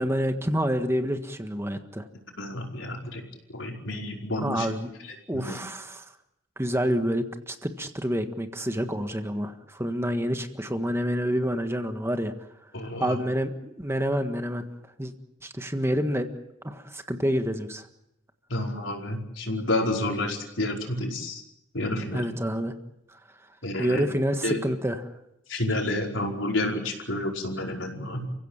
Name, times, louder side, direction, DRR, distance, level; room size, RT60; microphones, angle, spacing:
voice 1, 0.0-2.1 4.4-4.9 5.3-6.0 6.6-12.3 13.0-14.6 15.0-15.1 15.4-16.3 16.6-17.8 22.1-22.7 23.8-25.0, equal, 15° right, 7 dB, 1.6 m, -28 dB
voice 2, 2.4-3.2 3.5-4.7 5.0-5.6 12.7-13.2 18.5-21.4 21.7-22.3 23.6-24.1 24.4-24.6 25.5-28.3, left 1 dB, 75° left, 1 dB, 5.1 m, -30 dB
30.0 x 16.5 x 9.0 m, 0.84 s
head